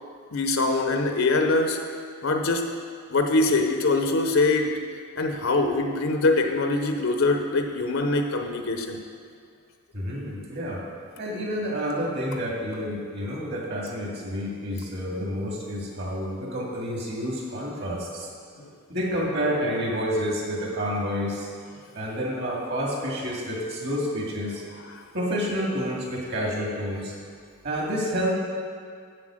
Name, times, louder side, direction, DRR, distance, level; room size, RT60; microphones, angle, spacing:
voice 1, 0.3-1.8 2.2-2.7 3.1-4.7 5.2-9.0 18.6-18.7, left 2 dB, 70° left, 5 dB, 0.7 m, -23 dB
voice 2, 9.9-10.8 11.2-18.3 18.9-21.5 21.9-24.6 25.1-27.1 27.6-28.3, equal, 50° right, -3 dB, 2.2 m, -29 dB
8.0 x 7.6 x 6.3 m, 2.1 s
head